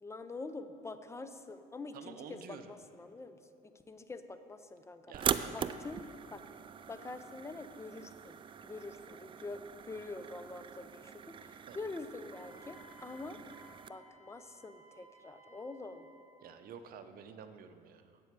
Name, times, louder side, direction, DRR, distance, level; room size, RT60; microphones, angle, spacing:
voice 1, 0.0-5.1 5.5-6.4 6.9-13.4 13.8-16.1, left 3 dB, 15° left, 10 dB, 0.6 m, -46 dB
voice 2, 1.9-2.7 5.1-5.8 11.7-11.8 16.4-18.2, right 7 dB, 60° right, 8 dB, 0.8 m, -50 dB
sound 1, 5.1-13.9, right 7 dB, 30° right, 0.3 m, -41 dB
Wind instrument woodwind instrument, 12.3-16.4, right 1 dB, 40° left, 1.6 m, -60 dB
8.4 x 7.8 x 6.7 m, 2.4 s
cardioid pair, 110°, 17 cm